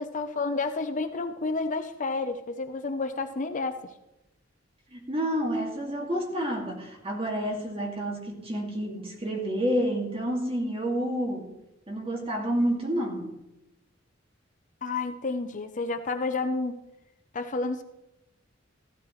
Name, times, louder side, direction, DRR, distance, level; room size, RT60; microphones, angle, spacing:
voice 1, 0.0-3.9 14.8-16.8 17.3-17.8, left 3 dB, 40° left, 7 dB, 0.7 m, -30 dB
voice 2, 4.9-11.5 11.9-13.4, equal, 30° right, 1 dB, 2.2 m, -29 dB
15.0 x 12.5 x 3.2 m, 0.94 s
head